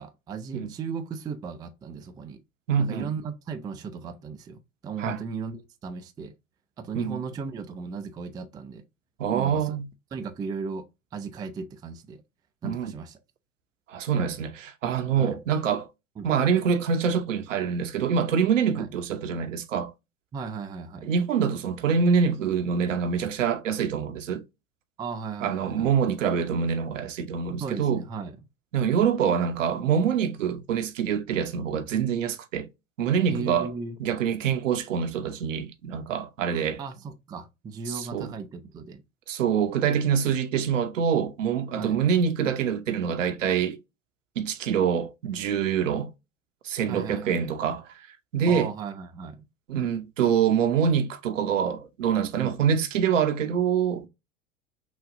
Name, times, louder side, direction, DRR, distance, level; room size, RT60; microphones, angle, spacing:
voice 1, 0.0-2.4 2.8-6.3 6.8-8.8 9.3-9.7 10.1-12.2 12.6-13.2 15.1-15.4 16.2-16.3 18.8-18.9 20.3-21.1 25.0-26.1 27.6-28.4 33.3-34.0 36.8-39.0 41.7-42.0 46.9-47.7 48.5-49.5 52.4-52.7, right 5 dB, 10° right, 0.4 m, -36 dB
voice 2, 2.7-3.1 5.0-5.2 6.9-7.2 9.2-9.8 12.6-12.9 13.9-15.9 16.2-19.9 21.0-24.4 25.4-28.0 28.7-32.7 33.0-33.7 34.0-36.8 37.9-38.3 39.3-43.8 44.4-46.1 46.6-47.8 48.3-48.7 49.7-54.1, right 7 dB, 70° right, 0.9 m, -25 dB
6.0 x 2.4 x 2.6 m
figure-of-eight pair, 90°, 39 cm